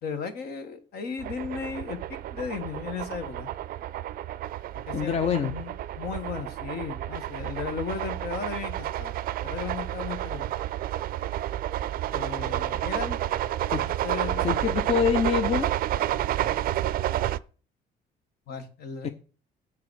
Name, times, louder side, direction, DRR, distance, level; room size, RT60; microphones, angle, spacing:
voice 1, 0.0-2.0 2.3-3.5 4.9-9.2 9.4-10.5 12.1-13.2 14.0-14.5 18.5-19.1, left 6 dB, 65° left, 8 dB, 1.5 m, -35 dB
sound 1, 1.2-17.4, right 13 dB, 60° right, 0.4 m, -30 dB
voice 2, 4.9-5.5 13.7-13.8 14.4-15.7 19.0-19.1, left 7 dB, 40° left, 10 dB, 0.6 m, -25 dB
7.2 x 4.8 x 6.3 m, 0.37 s
cardioid pair, 110°, 17 cm